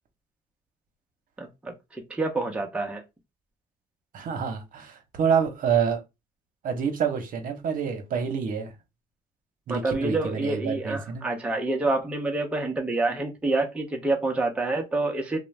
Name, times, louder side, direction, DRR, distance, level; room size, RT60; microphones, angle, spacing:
voice 1, 1.4-3.0 9.7-15.4, right 2 dB, 5° right, 0.5 m, -27 dB
voice 2, 4.1-6.0 6.6-8.7 9.7-11.3, right 7 dB, 55° right, 0.8 m, -27 dB
2.4 x 2.0 x 3.1 m
cardioid pair, 110°, 17 cm